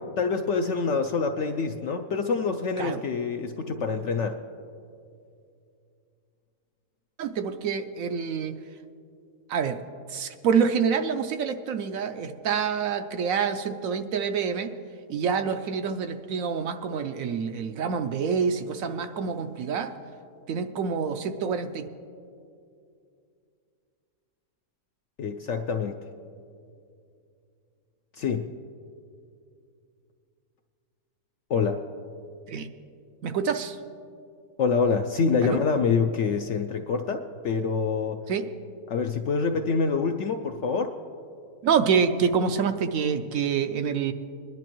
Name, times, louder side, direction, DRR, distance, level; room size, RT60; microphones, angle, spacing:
voice 1, 0.2-4.4 25.2-26.0 28.2-28.5 31.5-31.8 34.6-38.2 38.9-40.9, left 5 dB, 65° left, 5 dB, 0.7 m, -26 dB
voice 2, 7.2-8.5 9.5-9.8 10.1-14.7 15.1-19.9 20.5-21.9 32.5-32.7 33.2-33.8 35.4-35.6 38.3-38.4 41.6-44.1, right 6 dB, 70° right, 8 dB, 0.9 m, -27 dB
22.0 x 11.0 x 3.0 m, 2.5 s
omnidirectional pair, 1.6 m